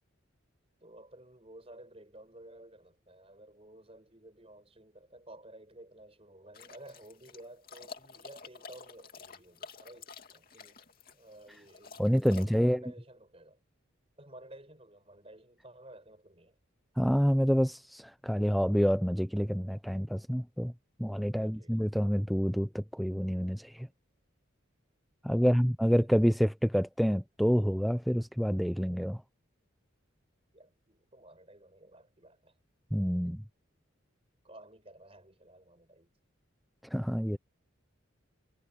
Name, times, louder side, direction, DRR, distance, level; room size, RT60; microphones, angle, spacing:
voice 1, 0.8-10.8 11.1-13.6 14.2-16.6 21.3-21.7 25.3-25.7 25.9-26.1 30.5-32.6 34.4-36.1, right 1 dB, 30° right, 5.6 m, -53 dB
sound 1, 6.5-12.6, left 5 dB, 45° left, 2.7 m, -50 dB
voice 2, 12.0-12.8 17.0-20.7 21.0-23.9 25.2-29.2 32.9-33.4 36.9-37.4, equal, ahead, 0.5 m, -28 dB
head